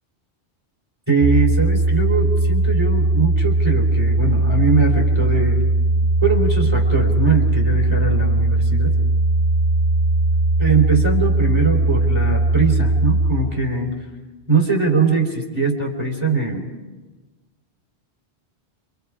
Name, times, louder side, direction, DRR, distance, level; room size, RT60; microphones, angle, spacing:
voice 1, 1.1-5.6 6.2-8.9 10.6-13.9 14.5-16.7, right 4 dB, 25° right, -1 dB, 3.7 m, -21 dB
sound 1, 1.2-13.3, right 2 dB, 70° right, 3.2 m, -18 dB
28.0 x 25.5 x 5.0 m, 1.2 s
omnidirectional pair, 1.2 m